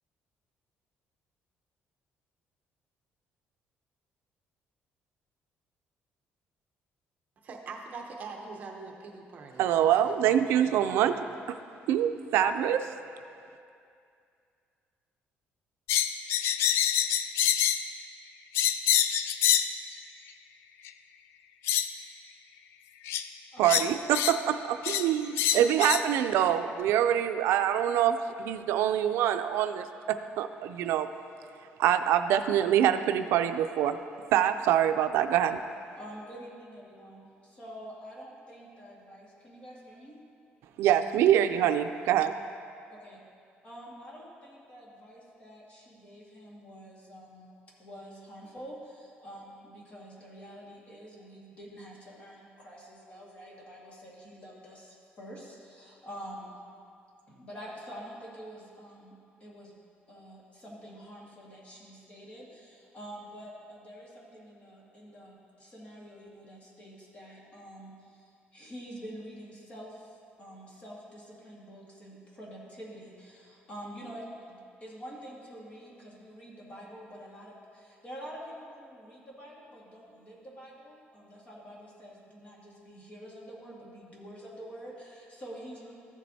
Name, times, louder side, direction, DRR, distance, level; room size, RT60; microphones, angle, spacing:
voice 1, 7.4-11.3, right 4 dB, 40° right, 1 dB, 0.8 m, -44 dB
voice 2, 9.6-11.2 11.9-12.9 23.6-31.1 31.8-34.0 34.3-35.6 40.8-42.3, right 10 dB, 90° right, 9 dB, 0.4 m, -25 dB
sound 1, 15.9-17.9 18.5-19.7 20.8-20.9 21.7-21.9 23.1-23.2 23.6-24.4 24.8-25.1 25.4-26.1, left 10 dB, 85° left, 0.3 m, -26 dB
voice 3, 35.9-40.2 42.9-43.2 43.6-47.5 47.8-56.6 57.3-59.1 59.4-59.8 60.1-85.9, equal, 30° left, -4 dB, 1.8 m, -47 dB
14.0 x 7.4 x 2.7 m, 2.4 s
cardioid pair, 165°, 4 cm